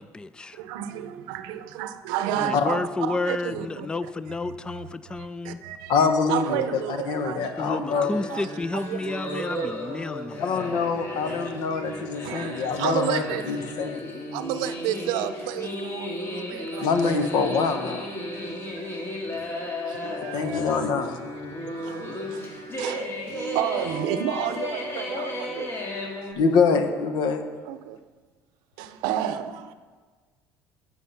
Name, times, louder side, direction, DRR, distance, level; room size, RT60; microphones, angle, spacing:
voice 1, 0.0-0.6 2.4-5.6 7.6-11.9 19.3-19.8, left 3 dB, 10° left, 0.3 m, -32 dB
voice 2, 0.5-3.9 4.4-5.2 5.4-8.0 8.3-9.7 11.3-11.4 11.7-13.6 14.3-17.5 18.3-19.2 19.9-20.9 21.5-26.1 27.6-28.0 28.8-29.7, right 10 dB, 90° right, 0.6 m, -32 dB
voice 3, 5.9-6.6 6.9-8.1 10.4-14.0 16.8-18.0 20.3-21.2 26.3-27.4, left 5 dB, 70° left, 1.1 m, -24 dB
sound 1, 7.9-26.3, left 1 dB, 35° left, 2.1 m, -34 dB
9.6 x 8.3 x 5.8 m
cardioid pair, 125°, 7 cm